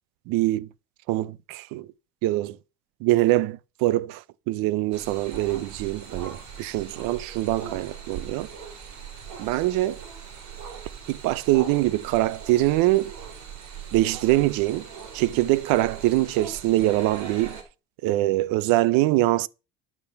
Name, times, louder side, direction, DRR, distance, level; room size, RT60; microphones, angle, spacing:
voice 1, 0.3-0.7 1.1-1.9 2.2-2.6 3.0-8.5 9.4-10.0 11.1-13.1 13.9-14.9 15.1-17.6 18.0-19.5, right 17 dB, 90° right, 0.7 m, -23 dB
sound 1, 4.9-17.6, right 6 dB, 60° right, 3.2 m, -40 dB
12.0 x 6.1 x 5.7 m
cardioid pair, 120°, 33 cm